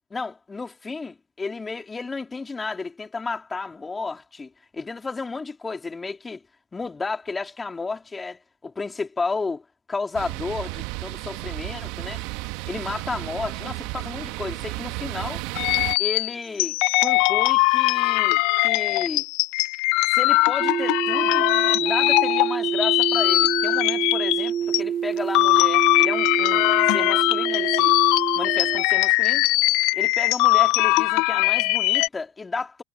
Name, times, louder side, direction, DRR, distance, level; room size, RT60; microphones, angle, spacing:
voice 1, 0.1-6.4 6.7-9.6 9.9-12.2 12.7-15.4 16.0-19.3 20.1-21.5 21.8-27.9 28.4-29.5 29.9-32.8, left 4 dB, 15° left, 4.3 m, -32 dB
sound 1, 10.1-16.0, right 23 dB, 60° right, 1.9 m, -33 dB
sound 2, 15.6-24.8 25.2-32.1, left 23 dB, 55° left, 0.9 m, -21 dB
sound 3, 20.6-28.8, right 9 dB, 30° right, 1.4 m, -27 dB
hypercardioid pair, 100°, 0 cm